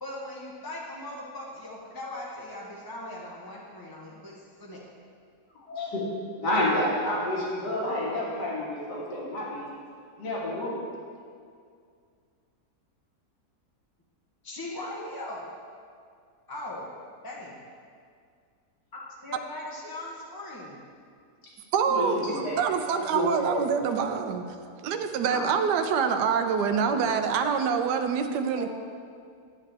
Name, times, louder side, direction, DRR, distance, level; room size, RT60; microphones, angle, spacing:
voice 1, 0.0-4.3 4.6-4.8 14.4-15.4 16.5-16.9 17.2-17.6 18.9-20.8, left 1 dB, 20° left, -4 dB, 0.6 m, -39 dB
voice 2, 5.7-6.0 6.4-9.7 10.2-10.8 21.9-22.6 23.0-23.6 25.3-25.5 26.8-27.0 28.6-28.7, left 1 dB, 85° left, -5 dB, 2.3 m, -29 dB
voice 3, 21.7-24.5 24.8-28.7, right 6 dB, 90° right, 7 dB, 1.2 m, -26 dB
11.0 x 7.5 x 3.3 m, 2.2 s
omnidirectional pair, 1.7 m